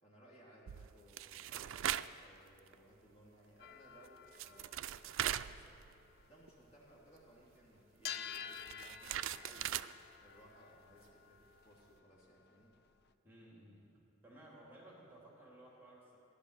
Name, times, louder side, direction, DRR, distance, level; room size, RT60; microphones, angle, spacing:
voice 1, 0.0-5.8 6.3-9.8 10.2-12.7, right 1 dB, 30° left, -5 dB, 2.8 m, -62 dB
sound 1, 0.7-2.2 2.6-2.7 4.0-4.1 4.3-6.2 6.5-6.6 8.1-9.9, right 11 dB, 70° right, 0.3 m, -40 dB
sound 2, 3.6-7.1 7.3-7.5 7.9-13.1, left 8 dB, 50° left, 0.5 m, -51 dB
voice 2, 13.2-13.9 14.2-16.2, right 1 dB, 10° right, -4 dB, 2.5 m, -57 dB
15.5 x 11.5 x 6.5 m, 2.6 s
head